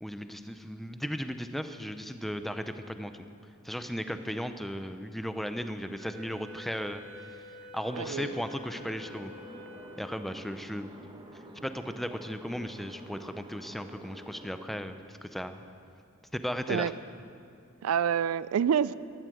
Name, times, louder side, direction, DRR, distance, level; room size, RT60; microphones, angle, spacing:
voice 1, 0.0-3.1 3.6-7.0 7.3-7.4 7.7-9.3 10.0-10.9 11.6-15.6 16.3-16.9, equal, ahead, 9 dB, 0.5 m, -36 dB
Wind instrument woodwind instrument, 6.0-10.5, left 1 dB, 65° right, 2.2 m, -48 dB
sound 1, 7.9-14.7, right 1 dB, 25° right, 1.1 m, -49 dB
voice 2, 8.0-8.3 16.7-16.9 17.8-18.9, right 8 dB, 80° right, 18 dB, 0.3 m, -27 dB
14.0 x 11.5 x 7.9 m, 2.4 s
head